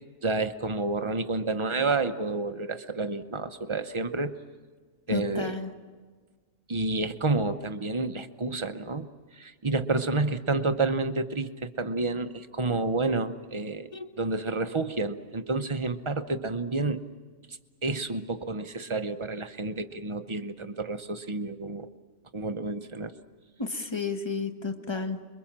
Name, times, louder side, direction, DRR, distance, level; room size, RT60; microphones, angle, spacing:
voice 1, 0.2-4.4 5.1-5.6 6.7-9.1 9.3-13.9 14.2-17.0 17.5-21.9 22.3-23.1, right 3 dB, 25° right, 9 dB, 0.8 m, -29 dB
voice 2, 5.1-5.7 13.9-14.2 23.6-25.2, left 4 dB, 20° left, 7 dB, 1.2 m, -32 dB
26.5 x 23.0 x 7.4 m, 1.5 s
omnidirectional pair, 1.4 m